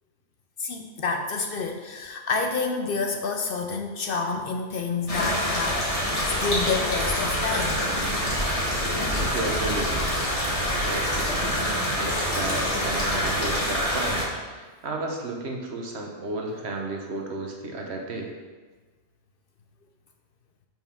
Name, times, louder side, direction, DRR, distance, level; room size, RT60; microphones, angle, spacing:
voice 1, 0.6-7.9, left 4 dB, 60° left, 4 dB, 0.6 m, -29 dB
sound 1, 5.1-14.2, equal, 30° left, 1.6 m, -26 dB
voice 2, 9.1-10.2 10.7-18.3, right 2 dB, 65° right, 1 dB, 1.2 m, -33 dB
5.5 x 4.6 x 5.6 m, 1.4 s
omnidirectional pair, 1.2 m